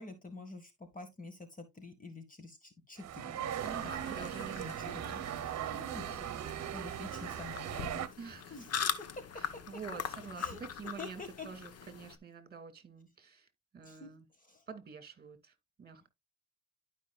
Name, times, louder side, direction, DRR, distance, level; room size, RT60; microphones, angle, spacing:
voice 1, 0.0-3.9 4.2-5.5 5.8-6.3 6.7-8.1 8.5-8.9 10.4-10.6 11.0-11.5 13.8-14.1 14.4-14.6, left 3 dB, 25° left, 1.7 m, -48 dB
sound 1, 3.0-8.1, right 10 dB, 60° right, 0.9 m, -39 dB
sound 2, 3.6-12.2, left 7 dB, 55° left, 1.1 m, -42 dB
voice 2, 3.6-5.2 6.0-6.4 6.7-6.9 8.2-8.5 9.3-13.5 13.7-14.3 14.7-15.5 15.8-16.1, right 5 dB, 30° right, 2.2 m, -48 dB
12.0 x 5.3 x 2.4 m
cardioid pair, 90°, 30 cm